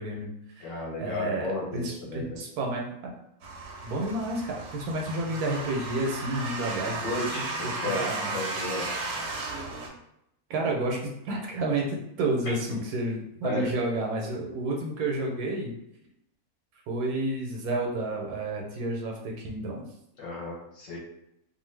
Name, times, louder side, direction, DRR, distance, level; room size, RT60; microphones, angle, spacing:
voice 1, 0.0-0.7 1.0-3.1 3.8-8.3 10.5-15.7 16.9-19.9, right 2 dB, 80° right, 0 dB, 1.1 m, -31 dB
voice 2, 0.6-2.4 7.0-8.0 8.3-8.9 12.4-12.8 13.4-13.7 20.2-21.0, left 2 dB, 60° left, -4 dB, 1.0 m, -33 dB
sound 1, 3.4-9.9, right 3 dB, 60° right, 0.8 m, -35 dB
2.5 x 2.5 x 3.1 m, 0.80 s
omnidirectional pair, 1.6 m